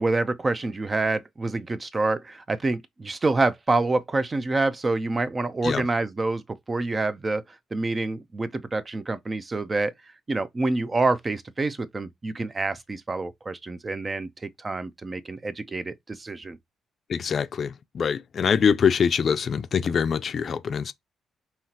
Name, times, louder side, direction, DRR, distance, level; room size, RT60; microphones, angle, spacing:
voice 1, 0.0-6.4 6.7-7.4 7.7-9.9 10.3-16.6, right 3 dB, 25° right, 0.6 m, -27 dB
voice 2, 17.1-20.9, left 7 dB, 50° left, 0.5 m, -24 dB
5.6 x 3.0 x 2.9 m
cardioid pair, 90°, 0 cm